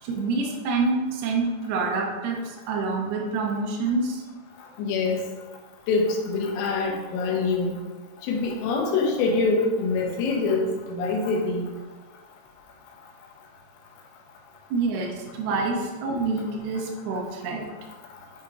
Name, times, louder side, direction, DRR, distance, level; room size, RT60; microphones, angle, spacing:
voice 1, 0.0-4.2 14.7-17.7, right 3 dB, 75° right, -1 dB, 2.6 m, -27 dB
voice 2, 4.8-5.2 5.9-7.7 8.3-11.7, left 3 dB, 90° left, 0 dB, 3.2 m, -24 dB
8.4 x 2.9 x 4.6 m, 1.3 s
omnidirectional pair, 5.0 m